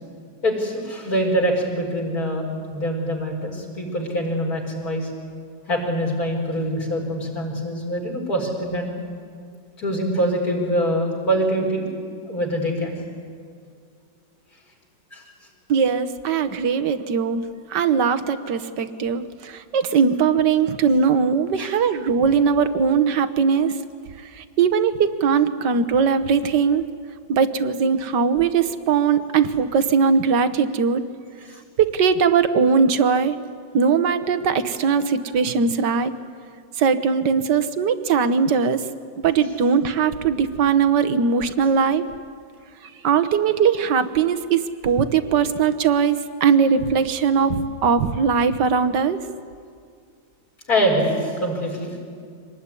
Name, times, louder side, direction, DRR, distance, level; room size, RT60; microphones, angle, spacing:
voice 1, 0.4-5.1 5.7-8.9 9.8-11.9 12.2-13.0 15.1-15.2 21.6-21.7 50.7-52.0, equal, 50° left, -1 dB, 5.7 m, -24 dB
voice 2, 15.7-17.4 17.7-23.8 24.4-26.8 27.3-31.0 31.8-33.4 33.7-36.1 36.8-38.8 39.2-42.0 43.0-49.2, right 6 dB, 65° right, 11 dB, 1.7 m, -20 dB
25.5 x 19.5 x 9.9 m, 2.2 s
omnidirectional pair, 2.1 m